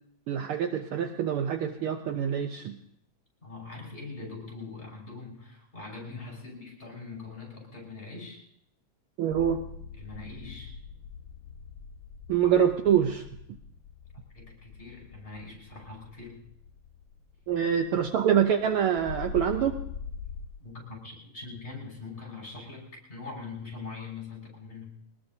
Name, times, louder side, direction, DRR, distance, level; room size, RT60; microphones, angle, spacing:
voice 1, 0.3-2.8 9.2-9.6 12.3-13.2 17.5-19.7, right 9 dB, 85° right, 6 dB, 1.2 m, -25 dB
voice 2, 3.4-8.4 9.9-10.8 14.3-16.4 20.6-25.0, left 3 dB, 20° left, -3 dB, 6.3 m, -42 dB
sound 1, 9.3-20.5, left 6 dB, 65° left, 1.4 m, -44 dB
23.0 x 19.5 x 2.8 m, 0.70 s
omnidirectional pair, 3.4 m